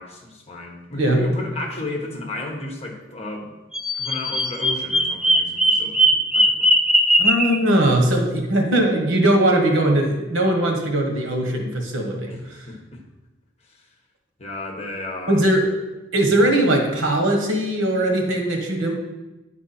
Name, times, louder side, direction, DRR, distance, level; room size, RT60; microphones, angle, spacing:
voice 1, 0.0-3.5 3.9-6.7 12.3-13.0 13.7-13.8 14.4-15.4, left 2 dB, 30° left, 1 dB, 1.2 m, -33 dB
Bird vocalization bird call bird song, 3.7-7.6, right 1 dB, 5° right, 0.5 m, -18 dB
voice 2, 7.2-12.3 15.3-15.7 16.1-19.0, right 1 dB, 85° right, 2 dB, 1.5 m, -20 dB
10.0 x 4.8 x 4.3 m, 1.1 s
head